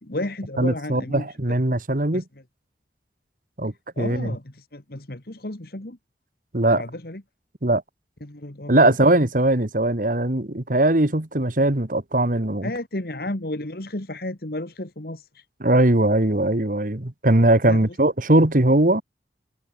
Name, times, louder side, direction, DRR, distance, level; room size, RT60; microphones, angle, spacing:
voice 1, 0.0-1.6 2.1-2.4 4.0-6.0 6.7-7.2 8.2-9.0 12.6-15.5 17.7-18.0, left 1 dB, 55° left, 2.0 m, -33 dB
voice 2, 0.6-2.2 3.6-4.3 6.5-6.8 7.6-7.8 8.7-12.7 15.6-19.0, right 1 dB, 50° right, 1.7 m, -20 dB
head